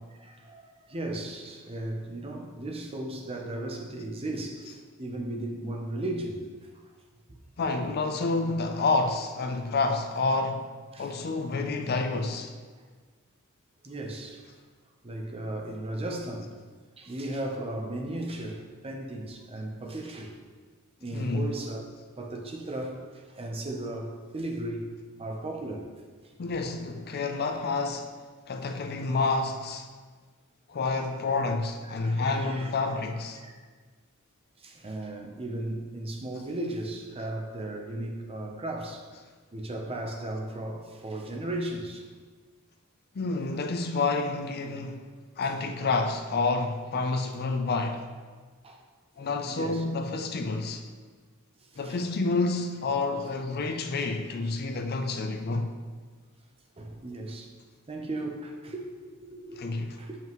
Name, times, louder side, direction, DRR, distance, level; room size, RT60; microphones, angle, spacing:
voice 1, 0.1-6.8 9.6-9.7 10.9-11.1 13.8-14.4 15.0-16.5 17.0-20.3 21.0-21.8 22.2-24.9 25.2-25.9 26.2-26.4 32.0-32.7 33.1-33.5 34.6-39.1 39.5-42.1 48.6-48.8 49.5-49.8 51.7-52.1 54.0-54.1 56.8-57.5 57.9-60.2, right 1 dB, 25° right, 0.7 m, -36 dB
voice 2, 7.6-10.7 11.0-12.5 21.1-21.5 26.4-28.1 28.5-29.9 30.7-33.4 43.1-45.0 45.4-48.1 49.2-50.8 51.8-55.7 59.6-60.0, left 3 dB, 45° left, 0.5 m, -29 dB
7.1 x 5.7 x 3.0 m
head